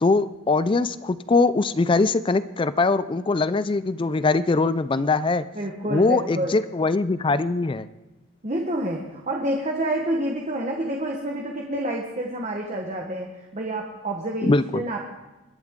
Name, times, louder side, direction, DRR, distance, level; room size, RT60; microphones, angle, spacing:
voice 1, 0.0-5.4 5.9-7.9 14.4-14.8, left 3 dB, 25° left, 15 dB, 0.3 m, -22 dB
voice 2, 5.5-6.6 8.4-13.3 13.5-14.5 14.7-15.0, right 1 dB, 35° right, 0 dB, 1.2 m, -28 dB
22.0 x 11.0 x 3.7 m, 1.0 s
head